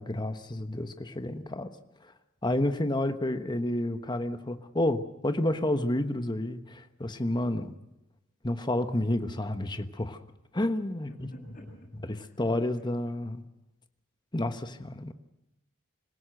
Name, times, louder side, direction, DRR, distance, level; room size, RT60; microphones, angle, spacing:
voice 1, 0.0-1.7 2.4-7.7 8.4-10.2 10.5-11.1 12.4-13.4 14.3-15.1, left 1 dB, 20° left, 9 dB, 1.2 m, -30 dB
voice 2, 11.3-11.7 12.0-12.9, equal, 40° left, -1 dB, 8.0 m, -53 dB
26.0 x 16.5 x 7.7 m, 0.96 s
head